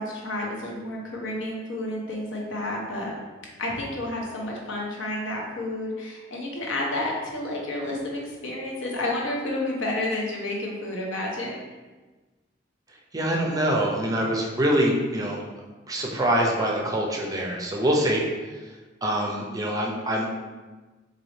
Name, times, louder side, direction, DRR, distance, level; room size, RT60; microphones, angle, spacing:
voice 1, 0.0-3.2 3.6-11.6, left 1 dB, 90° left, -2 dB, 0.8 m, -30 dB
voice 2, 13.1-15.4 15.9-18.2 19.0-20.3, right 1 dB, 20° right, -1 dB, 0.4 m, -24 dB
4.0 x 2.7 x 3.1 m, 1.3 s
head